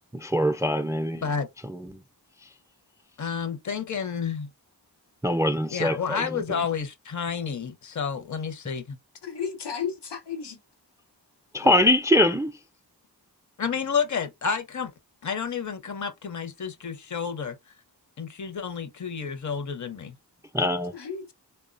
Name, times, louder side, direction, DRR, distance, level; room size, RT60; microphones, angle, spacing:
voice 1, 0.1-1.2 1.7-2.0 5.2-6.6 11.5-12.5 20.5-20.9, left 1 dB, 10° right, 0.3 m, -23 dB
voice 2, 3.2-4.5 5.7-9.0 13.6-14.9 15.2-17.5 18.2-20.1, left 6 dB, 45° left, 0.7 m, -30 dB
voice 3, 9.2-10.6 20.9-21.3, left 7 dB, 85° left, 0.8 m, -33 dB
3.6 x 2.2 x 2.5 m
cardioid pair, 45°, 41 cm